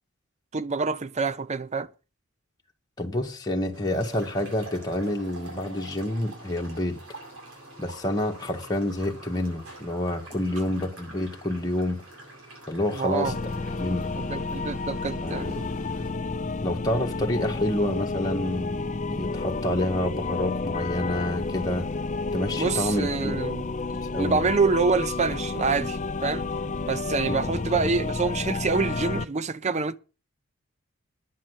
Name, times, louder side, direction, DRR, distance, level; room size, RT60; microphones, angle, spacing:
voice 1, 0.5-1.9 12.9-13.4 14.2-15.7 22.6-23.6 24.2-26.5 26.8-30.0, right 4 dB, 30° right, 0.5 m, -26 dB
voice 2, 3.0-7.0 7.8-12.0 12.7-13.3 13.8-14.1 15.2-15.5 16.6-21.9 22.3-23.4 23.9-24.5 27.3-27.9, left 1 dB, 20° left, 1.6 m, -28 dB
sound 1, 3.7-16.1, right 2 dB, 70° right, 6.9 m, -46 dB
sound 2, 13.2-29.2, left 3 dB, 35° left, 0.6 m, -31 dB
10.0 x 7.3 x 8.0 m
head